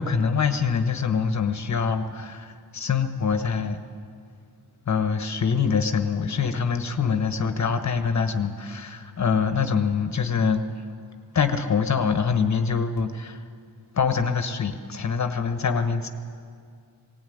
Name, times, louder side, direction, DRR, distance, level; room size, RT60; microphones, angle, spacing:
voice 1, 0.0-3.8 4.8-10.8 11.3-13.4 13.9-16.1, left 6 dB, 40° left, 8 dB, 1.2 m, -24 dB
20.0 x 17.5 x 9.3 m, 2.2 s
wide cardioid pair, 130°, 41 cm